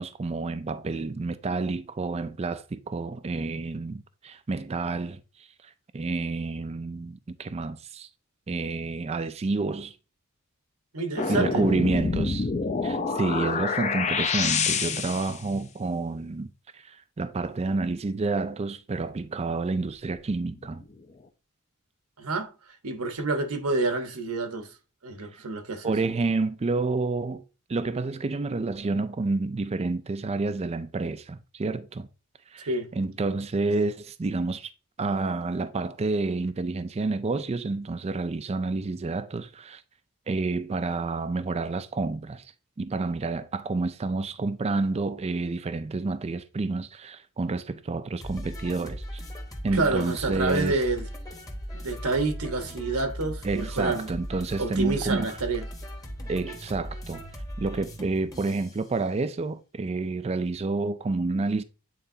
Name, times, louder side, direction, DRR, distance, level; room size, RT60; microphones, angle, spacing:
voice 1, 0.0-5.2 5.9-8.1 8.5-9.9 11.3-12.5 12.8-20.8 25.8-27.4 27.7-32.1 32.5-34.7 35.0-39.8 40.3-42.4 42.8-49.2 49.6-50.8 53.4-55.3 56.3-57.2 57.6-61.6, right 3 dB, 30° right, 0.4 m, -29 dB
voice 2, 10.9-11.7 22.2-22.5 22.8-24.7 25.0-26.0 32.7-32.9 49.7-51.1 51.7-54.1 54.6-55.7, right 3 dB, 80° right, 1.2 m, -28 dB
sound 1, 11.2-15.4 20.3-20.9, left 5 dB, 30° left, 0.6 m, -27 dB
sound 2, 48.2-58.8, equal, 15° left, 1.0 m, -38 dB
8.9 x 4.1 x 2.7 m
head